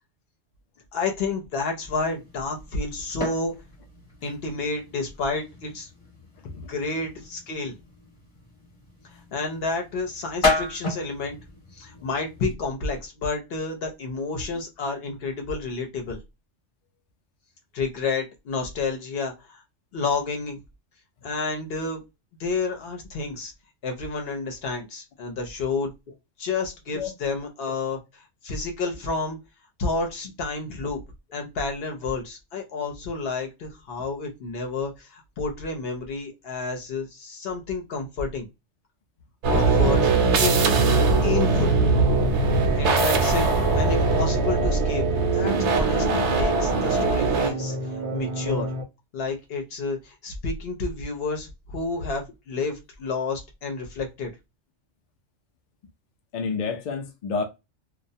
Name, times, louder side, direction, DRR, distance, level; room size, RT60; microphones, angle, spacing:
voice 1, 0.9-3.5 4.2-5.9 6.7-7.7 9.3-11.4 11.8-16.2 17.7-19.6 19.9-20.6 21.2-22.0 22.4-23.5 23.8-25.9 26.4-28.0 28.4-29.4 29.8-31.0 31.3-38.5 39.5-40.5 41.2-41.8 42.8-45.0 45.3-47.8 48.1-48.7 49.1-54.3, left 3 dB, 55° left, 0.8 m, -30 dB
sound 1, 1.8-12.5, left 3 dB, 25° left, 1.1 m, -34 dB
sound 2, 39.4-47.5, right 3 dB, 70° right, 0.8 m, -21 dB
sound 3, 41.9-48.8, right 3 dB, 45° right, 0.4 m, -30 dB
voice 2, 56.3-57.4, left 5 dB, 75° left, 0.4 m, -30 dB
2.3 x 2.0 x 2.6 m
omnidirectional pair, 1.3 m